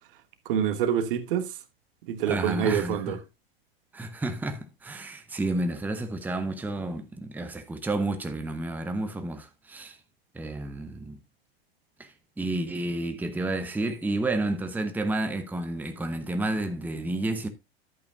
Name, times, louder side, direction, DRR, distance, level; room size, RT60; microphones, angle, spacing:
voice 1, 0.5-1.5 2.1-3.2, right 9 dB, 60° right, 1.2 m, -26 dB
voice 2, 2.3-3.2 3.9-10.0 10.3-11.2 12.0-17.5, right 2 dB, 5° right, 0.8 m, -31 dB
11.0 x 8.4 x 2.5 m
figure-of-eight pair, 95°, 31 cm